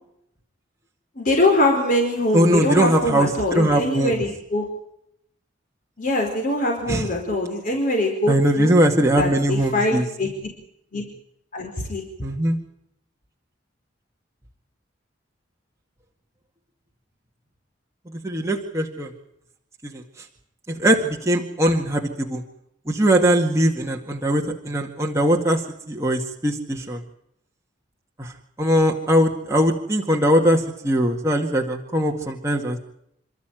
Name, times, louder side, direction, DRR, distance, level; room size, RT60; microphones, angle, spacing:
voice 1, 1.2-4.7 6.0-8.7 9.2-10.3 10.9-11.0 11.5-12.0, left 1 dB, 45° left, 1 dB, 4.6 m, -23 dB
voice 2, 2.3-4.2 6.9-7.1 8.3-10.1 12.2-12.6 18.1-19.1 19.8-20.3 20.7-22.4 22.9-27.0 28.2-32.8, equal, 15° right, 0 dB, 2.0 m, -21 dB
28.5 x 13.0 x 9.2 m, 0.76 s
head